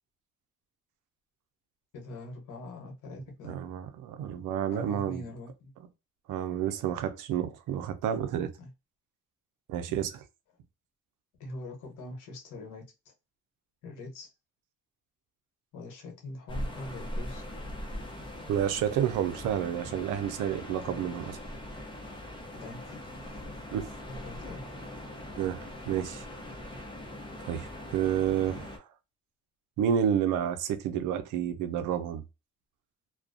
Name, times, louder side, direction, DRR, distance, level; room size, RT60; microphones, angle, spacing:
voice 1, 1.9-3.6 4.7-5.7 8.6-8.7 11.4-13.1 13.8-14.3 15.7-17.4 20.8-21.0 22.6-23.5 24.1-24.6, left 2 dB, 85° left, 0.9 m, -43 dB
voice 2, 3.4-5.2 6.3-8.5 9.7-10.2 18.5-21.4 23.7-23.9 25.4-26.3 27.4-28.8 29.8-32.2, right 9 dB, 85° right, 0.5 m, -30 dB
sound 1, 16.5-28.8, left 1 dB, 15° left, 0.7 m, -41 dB
2.3 x 2.2 x 2.5 m
cardioid pair, 90°, 30 cm